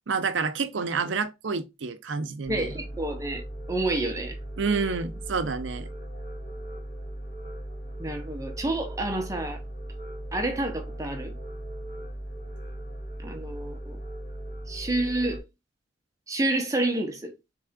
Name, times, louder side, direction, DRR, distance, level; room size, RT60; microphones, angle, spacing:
voice 1, 0.1-2.7 4.6-5.9, right 5 dB, 70° right, 0.6 m, -29 dB
sound 1, 2.5-15.4, right 1 dB, 35° left, 2.0 m, -38 dB
voice 2, 2.5-3.4 3.7-4.4 8.0-9.6 10.3-11.3 13.2-14.0 14.7-15.4 16.3-17.3, right 2 dB, 15° right, 0.7 m, -29 dB
3.7 x 3.3 x 3.6 m
head